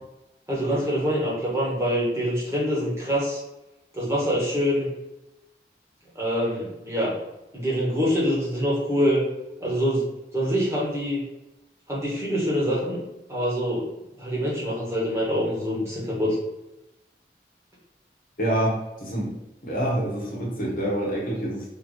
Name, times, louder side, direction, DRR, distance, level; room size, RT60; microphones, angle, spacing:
voice 1, 0.5-3.4 3.9-4.9 6.1-7.1 7.5-9.2 9.6-10.0 10.3-11.2 11.9-13.0 13.3-13.8 14.2-16.4, equal, 15° right, -6 dB, 1.2 m, -25 dB
voice 2, 18.4-19.4 19.6-21.7, right 1 dB, 50° left, -3 dB, 1.1 m, -27 dB
3.4 x 2.8 x 3.9 m, 0.96 s
head